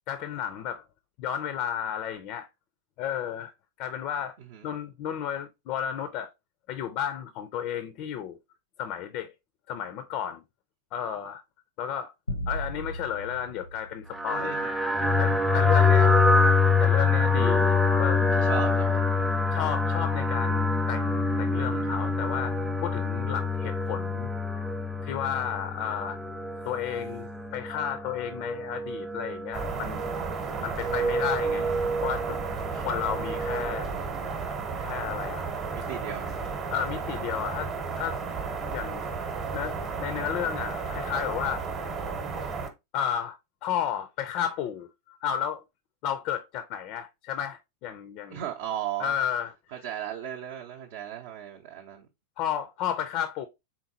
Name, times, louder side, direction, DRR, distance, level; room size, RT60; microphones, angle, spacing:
voice 1, 0.1-0.8 1.2-2.5 3.0-3.5 3.8-4.4 4.6-6.3 6.7-8.4 8.8-9.3 9.7-10.4 10.9-11.4 11.8-12.1 12.5-14.6 15.2-16.2 16.8-18.2 19.5-22.5 22.8-24.3 25.0-26.2 26.6-30.0 30.6-31.7 32.0-32.4 32.7-33.9 34.8-35.5 36.7-38.2 38.7-39.1 39.5-41.6 42.9-45.6 46.0-48.4 49.0-49.5 52.4-53.5, left 9 dB, 40° left, 0.4 m, -32 dB
sound 1, 12.3-14.9, equal, 80° left, 0.6 m, -37 dB
sound 2, 14.1-33.8, left 3 dB, 5° right, 0.6 m, -26 dB
voice 2, 14.3-14.7 15.8-16.1 18.4-19.0 30.5-30.9 35.7-36.3 48.3-49.1 49.8-52.1, right 10 dB, 50° right, 0.6 m, -36 dB
sound 3, 29.5-42.7, right 5 dB, 30° right, 0.9 m, -33 dB
4.4 x 3.7 x 2.8 m
figure-of-eight pair, 90°, 0 cm